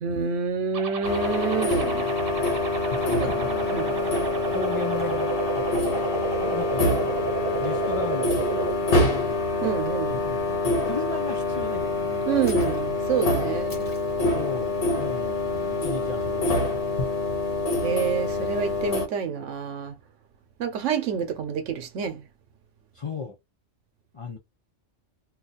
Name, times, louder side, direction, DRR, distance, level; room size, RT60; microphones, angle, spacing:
voice 1, 0.0-2.1 3.2-3.4 3.7-4.0 9.6-10.3 12.3-14.0 17.8-19.9 20.6-22.2, right 7 dB, 80° right, 1.0 m, -28 dB
sound 1, 0.7-8.7, right 4 dB, 55° right, 0.9 m, -32 dB
sound 2, 1.0-19.1, left 2 dB, 55° left, 1.1 m, -26 dB
sound 3, 2.0-2.3 3.0-3.3 4.0-4.2 4.9-5.2 6.5-6.7 7.5-7.7 8.6-8.9 9.8-10.0 10.8-11.0 12.5-12.9 13.7-14.1, left 1 dB, 20° left, 1.1 m, -44 dB
voice 2, 3.0-5.4 6.4-7.2 7.6-9.4 10.2-12.3 13.4-13.7 14.3-16.8 22.9-23.4 24.1-24.4, left 4 dB, 35° left, 0.6 m, -36 dB
2.7 x 2.4 x 4.0 m
omnidirectional pair, 1.2 m